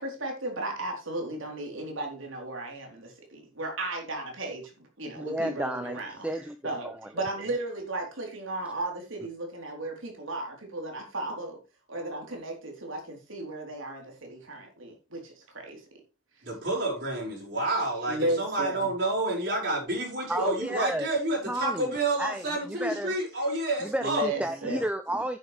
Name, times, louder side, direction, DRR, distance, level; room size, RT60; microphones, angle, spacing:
voice 1, 0.0-6.1 6.6-11.6 11.9-15.8 18.1-18.9 24.0-24.8, right 1 dB, 75° right, 3.8 m, -35 dB
voice 2, 5.2-7.0 20.3-21.1 21.5-21.9 22.2-23.1 23.8-25.4, right 1 dB, 5° right, 0.5 m, -32 dB
voice 3, 16.4-24.2, right 2 dB, 55° right, 5.6 m, -29 dB
10.0 x 9.8 x 3.4 m
head